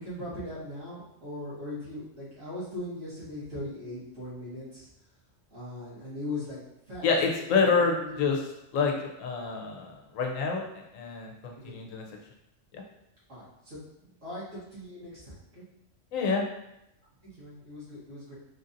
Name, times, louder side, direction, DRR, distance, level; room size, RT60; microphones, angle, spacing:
voice 1, 0.0-4.9 5.5-6.6 6.9-7.1 7.4-8.3 11.6-11.8 13.3-13.8 14.2-15.7 17.2-18.4, left 1 dB, 70° right, -10 dB, 2.0 m, -40 dB
voice 2, 7.0-8.4 8.7-12.1 12.7-12.8 16.1-16.4, left 5 dB, 85° left, 1 dB, 1.0 m, -27 dB
4.5 x 2.7 x 2.5 m, 0.86 s
omnidirectional pair, 1.3 m